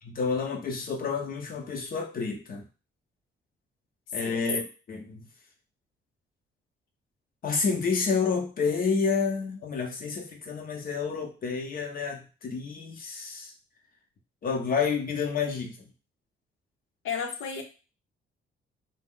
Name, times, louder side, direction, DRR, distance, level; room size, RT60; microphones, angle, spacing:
voice 1, 0.0-2.6 4.1-5.2 7.4-13.5 14.4-15.9, left 5 dB, 45° left, 2 dB, 0.7 m, -29 dB
voice 2, 17.0-17.6, left 6 dB, 85° left, 4 dB, 0.6 m, -32 dB
2.4 x 2.0 x 3.6 m, 0.34 s
cardioid pair, 90°, 20 cm